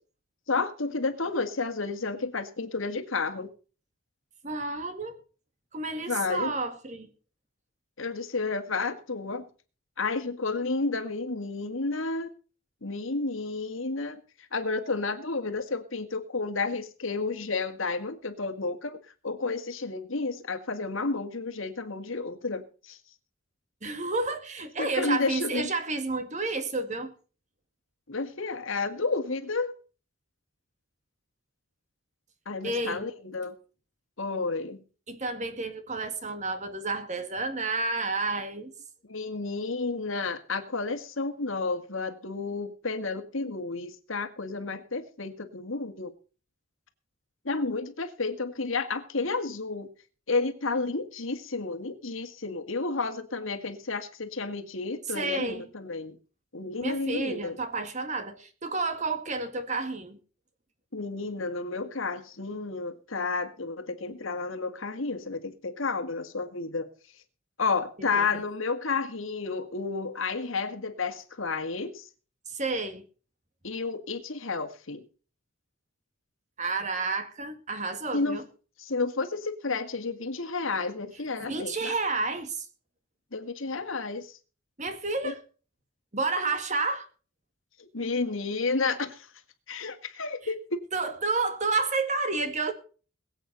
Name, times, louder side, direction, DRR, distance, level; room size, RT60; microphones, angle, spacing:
voice 1, 0.5-3.5 6.1-6.5 8.0-9.4 10.0-12.3 12.8-14.2 14.5-19.0 19.2-23.0 24.8-25.7 28.1-29.7 32.5-33.6 34.2-34.8 39.1-46.1 47.5-49.9 50.3-56.2 56.5-57.6 60.9-66.9 67.6-72.1 73.6-75.0 78.1-78.4 78.8-82.0 83.3-84.3 85.2-85.3 87.9-89.3 89.7-90.8, left 3 dB, 75° left, 1.8 m, -31 dB
voice 2, 4.4-5.2 5.7-7.1 23.8-27.1 32.6-33.1 35.1-38.7 55.1-55.7 56.8-60.2 68.0-68.4 72.5-73.0 76.6-78.4 81.5-82.7 84.8-85.4 86.1-87.1 90.9-92.7, right 3 dB, 35° right, 2.0 m, -30 dB
22.0 x 8.3 x 4.1 m
head